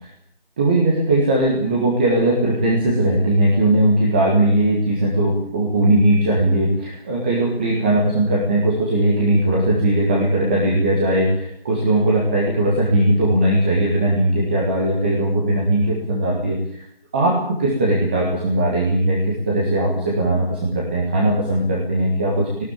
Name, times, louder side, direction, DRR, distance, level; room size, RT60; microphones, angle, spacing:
voice 1, 0.6-16.9 17.1-22.6, right 1 dB, 10° right, -3 dB, 1.6 m, -19 dB
18.5 x 18.5 x 8.9 m, 0.65 s
figure-of-eight pair, 170°, 30 cm